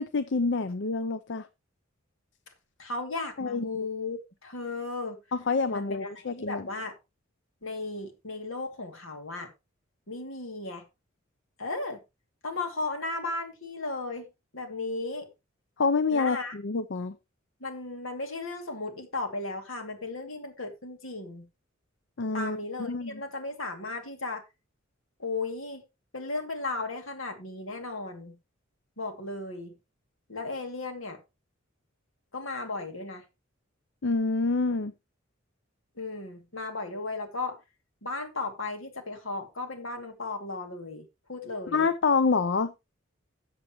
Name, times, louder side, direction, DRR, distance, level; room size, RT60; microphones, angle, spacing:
voice 1, 0.0-1.5 3.4-3.7 5.3-6.7 15.8-17.1 22.2-22.6 22.9-23.2 34.0-34.9 41.7-42.7, left 4 dB, 60° left, 0.6 m, -27 dB
voice 2, 2.8-5.2 5.7-7.0 7.6-9.5 10.1-10.8 11.6-12.0 12.4-14.3 14.5-15.3 16.1-16.5 17.6-21.5 22.3-24.4 25.2-25.8 26.1-28.4 29.0-29.7 30.3-31.2 32.3-33.2 36.0-37.6 38.0-41.9, left 3 dB, 75° left, 2.6 m, -35 dB
14.0 x 7.6 x 3.1 m
head